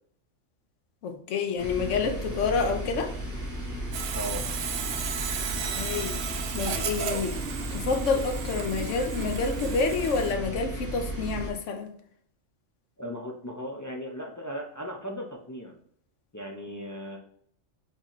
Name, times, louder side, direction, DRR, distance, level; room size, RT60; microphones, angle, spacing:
voice 1, 1.0-3.1 5.8-6.3 6.5-7.4 7.7-11.9, left 4 dB, 75° left, 6 dB, 1.1 m, -28 dB
sound 1, 1.6-11.5, equal, 15° right, 0.8 m, -35 dB
Sawing, 3.9-10.3, right 7 dB, 60° right, 0.7 m, -34 dB
voice 2, 4.1-4.4 13.0-15.7 16.3-17.2, equal, 25° left, 0 dB, 0.4 m, -37 dB
4.0 x 4.0 x 3.0 m, 0.63 s
omnidirectional pair, 1.3 m